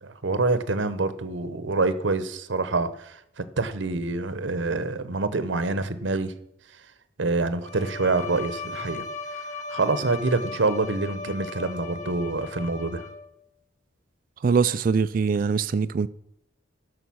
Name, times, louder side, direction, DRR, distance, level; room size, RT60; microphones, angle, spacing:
voice 1, 0.0-6.3 7.2-9.0 9.3-13.1, right 3 dB, 70° right, 0.8 m, -26 dB
Bowed string instrument, 7.6-13.4, left 3 dB, 40° left, 0.9 m, -37 dB
voice 2, 14.4-16.1, right 5 dB, 45° right, 0.3 m, -22 dB
11.5 x 6.5 x 6.2 m
head